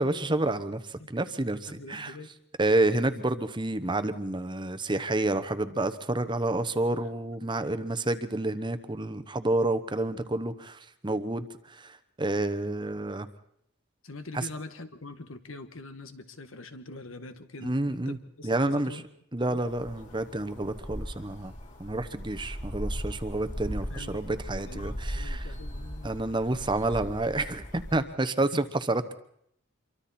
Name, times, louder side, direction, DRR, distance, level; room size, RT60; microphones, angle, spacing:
voice 1, 0.0-2.1 2.6-11.5 11.7-13.3 14.3-14.4 17.6-18.2 18.4-19.0 19.3-21.5 21.8-25.5 26.0-29.1, right 2 dB, 25° right, 11 dB, 1.0 m, -29 dB
voice 2, 1.7-2.3 14.0-19.0 19.5-19.6 23.9-26.2 28.5-28.6, left 2 dB, 80° left, 9 dB, 1.6 m, -44 dB
sound 1, 19.6-28.0, equal, 40° left, 4.0 m, -38 dB
27.0 x 24.0 x 4.3 m, 0.71 s
head